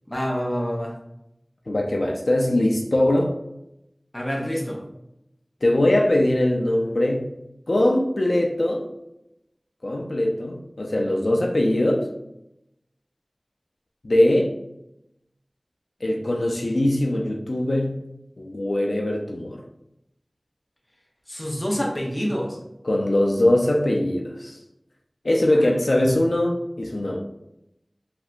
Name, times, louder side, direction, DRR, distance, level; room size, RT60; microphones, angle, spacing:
voice 1, 0.1-1.0 4.1-4.8 21.3-22.6 25.5-26.3, equal, 25° left, -2 dB, 0.7 m, -28 dB
voice 2, 1.7-3.3 5.6-7.3 7.7-8.9 9.8-12.1 14.0-14.5 16.0-18.0 18.4-19.6 22.8-24.6 25.2-27.2, left 1 dB, 80° left, 0 dB, 0.4 m, -21 dB
3.3 x 2.7 x 2.5 m, 0.84 s
wide cardioid pair, 50°, 0 cm